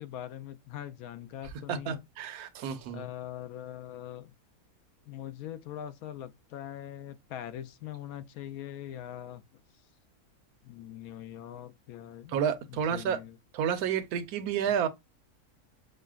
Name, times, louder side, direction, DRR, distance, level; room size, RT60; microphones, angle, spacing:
voice 1, 0.0-2.0 2.9-4.3 5.0-9.4 10.6-12.3 12.7-13.4, left 11 dB, 75° left, 1.0 m, -42 dB
voice 2, 1.7-3.1 12.3-13.2 13.5-14.9, right 8 dB, 85° right, 1.2 m, -30 dB
6.3 x 2.1 x 2.3 m
omnidirectional pair, 1.6 m